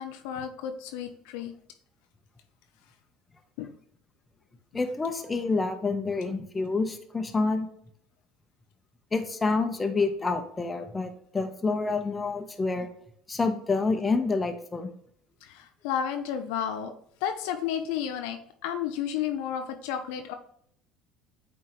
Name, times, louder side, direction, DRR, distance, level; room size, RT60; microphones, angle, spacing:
voice 1, 0.0-1.5 3.6-3.7 15.4-16.9 17.2-20.3, left 9 dB, 70° left, 6 dB, 0.6 m, -32 dB
voice 2, 4.7-7.7 9.1-12.9 13.3-14.9, left 3 dB, 20° left, 6 dB, 1.0 m, -28 dB
8.5 x 3.6 x 3.1 m, 0.65 s
hypercardioid pair, 70°, 0 cm